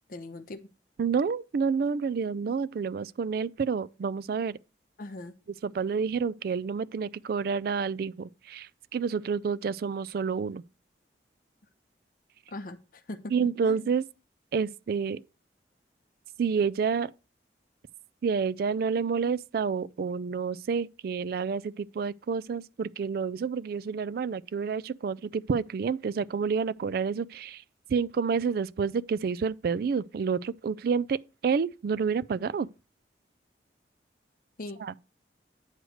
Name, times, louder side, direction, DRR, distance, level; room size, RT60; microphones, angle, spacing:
voice 1, 0.1-0.7 5.0-5.3 12.5-13.9 34.6-34.8, left 2 dB, 50° left, 0.6 m, -40 dB
voice 2, 1.0-4.6 5.6-10.6 13.3-14.0 14.5-15.2 16.4-17.1 18.2-27.6 27.9-32.7 34.8-34.9, right 5 dB, 55° right, 0.3 m, -29 dB
9.0 x 3.2 x 6.3 m
head